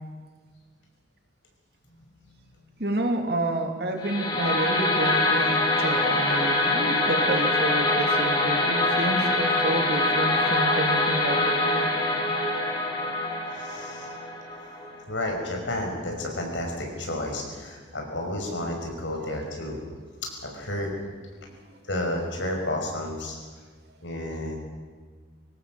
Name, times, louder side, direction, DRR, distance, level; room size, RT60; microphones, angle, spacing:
voice 1, 2.8-11.9, right 1 dB, 55° right, 4 dB, 2.8 m, -29 dB
sound 1, 4.0-15.0, left 2 dB, 25° left, 3.2 m, -24 dB
voice 2, 13.6-14.1 15.1-19.8 20.2-20.9 21.8-23.3 24.0-24.6, left 1 dB, 85° left, 2 dB, 5.6 m, -31 dB
23.5 x 18.0 x 7.6 m, 1.5 s
head